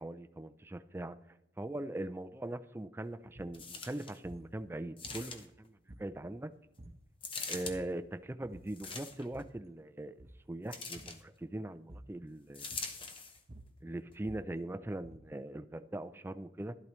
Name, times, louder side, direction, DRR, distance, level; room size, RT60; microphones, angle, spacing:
voice 1, 0.0-6.5 7.5-12.7 13.8-16.8, right 1 dB, 15° right, 11 dB, 0.4 m, -41 dB
sound 1, 3.3-3.6 4.2-4.5 5.0-5.6 5.9-6.4 6.8-7.1 7.5-8.0 8.4-8.8 9.1-9.6 10.1-10.5 10.9-11.2 11.9-12.2 12.7-13.1 13.4-15.4, right 1 dB, 35° right, 0.8 m, -53 dB
sound 2, 3.5-4.2 5.0-5.7 7.2-7.8 8.7-9.4 10.7-11.2 12.5-13.4 14.1-14.2, left 4 dB, 30° left, 1.0 m, -43 dB
12.0 x 11.5 x 3.1 m, 0.82 s
head